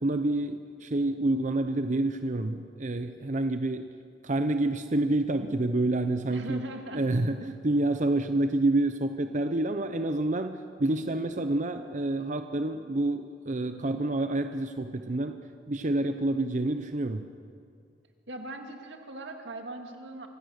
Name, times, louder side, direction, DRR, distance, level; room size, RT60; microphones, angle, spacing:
voice 1, 0.0-3.9 4.2-6.6 6.9-15.4 15.7-17.2, right 2 dB, 45° right, 8 dB, 0.7 m, -28 dB
voice 2, 6.3-7.0 18.3-20.3, right 1 dB, 85° right, 4 dB, 2.1 m, -39 dB
25.5 x 16.0 x 6.5 m, 2.3 s
head